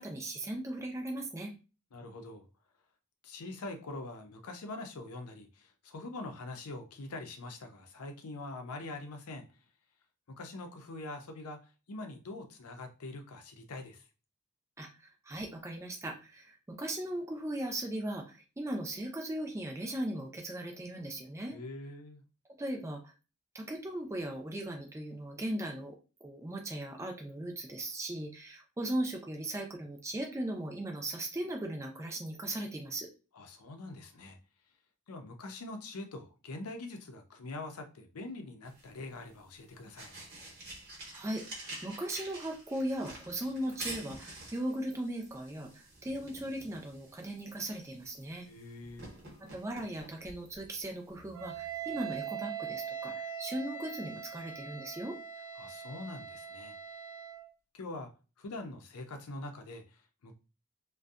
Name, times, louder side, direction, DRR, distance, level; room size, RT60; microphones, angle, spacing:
voice 1, 0.0-1.5 14.8-21.6 22.6-23.1 23.5-26.0 26.2-33.1 41.1-48.5 49.5-55.2, right 1 dB, 15° right, 0.4 m, -38 dB
voice 2, 1.9-2.4 3.2-9.4 10.4-14.0 21.5-22.2 33.3-34.4 35.1-40.1 48.5-49.1 55.6-56.8 57.7-58.1 58.4-60.3, left 2 dB, 90° left, 0.6 m, -44 dB
sound 1, 38.6-52.2, right 2 dB, 50° right, 0.9 m, -49 dB
Wind instrument woodwind instrument, 51.3-57.5, right 8 dB, 80° right, 0.5 m, -41 dB
2.6 x 2.2 x 2.3 m
head